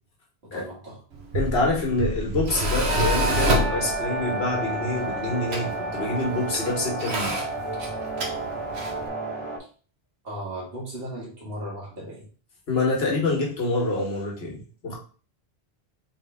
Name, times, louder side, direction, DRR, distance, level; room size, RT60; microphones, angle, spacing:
voice 1, 0.4-1.0 10.2-12.2, right 1 dB, 70° right, -5 dB, 2.0 m, -36 dB
Tools, 1.1-9.1, right 1 dB, 90° right, 1.2 m, -29 dB
voice 2, 1.3-7.4 12.7-14.9, left 2 dB, 75° left, -2 dB, 1.5 m, -26 dB
sound 1, 2.9-9.6, right 1 dB, 30° right, 1.2 m, -30 dB
4.0 x 3.5 x 3.4 m, 0.39 s
omnidirectional pair, 1.1 m